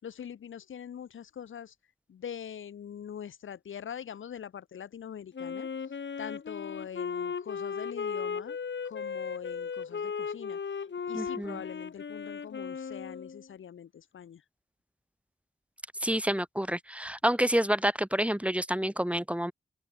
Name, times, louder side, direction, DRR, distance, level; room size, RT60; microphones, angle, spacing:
voice 1, 0.0-1.7 2.1-5.7 6.2-8.6 8.8-14.4, left 8 dB, 85° left, 6.1 m, -43 dB
Wind instrument woodwind instrument, 5.3-13.5, left 6 dB, 65° left, 6.0 m, -36 dB
voice 2, 11.1-11.6 16.0-19.5, equal, 5° right, 6.0 m, -28 dB
open air
supercardioid pair, 45°, 20 cm